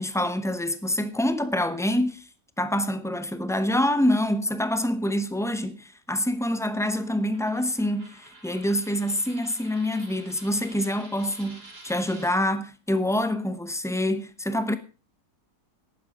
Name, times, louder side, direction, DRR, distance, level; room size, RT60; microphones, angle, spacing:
voice 1, 0.0-2.3 2.6-14.8, left 1 dB, 5° left, 0.3 m, -26 dB
Coin (dropping), 6.9-12.3, right 2 dB, 75° right, 3.6 m, -49 dB
11.0 x 10.5 x 5.2 m
omnidirectional pair, 1.7 m